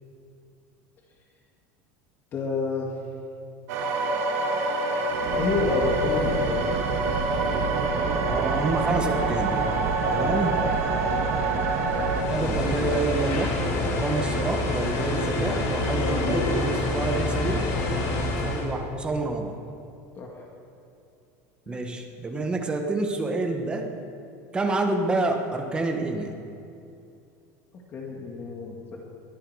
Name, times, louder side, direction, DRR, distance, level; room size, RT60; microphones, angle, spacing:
voice 1, 2.3-2.9 5.3-6.7 11.0-11.3 20.2-20.5 21.7-21.9 27.7-29.0, left 3 dB, 25° left, 0 dB, 1.8 m, -30 dB
sound 1, 3.7-12.2, right 2 dB, 90° right, 2.5 m, -26 dB
sound 2, 5.1-12.8, right 6 dB, 60° right, 1.6 m, -31 dB
voice 2, 8.3-9.6 10.1-10.6 12.3-17.7 18.4-19.6 21.7-23.9 24.5-26.3, right 3 dB, 10° right, 4 dB, 1.2 m, -28 dB
sound 3, 12.1-18.7, left 2 dB, 85° left, 4.2 m, -27 dB
21.5 x 12.5 x 4.8 m, 2.5 s
cardioid pair, 175°, 8 cm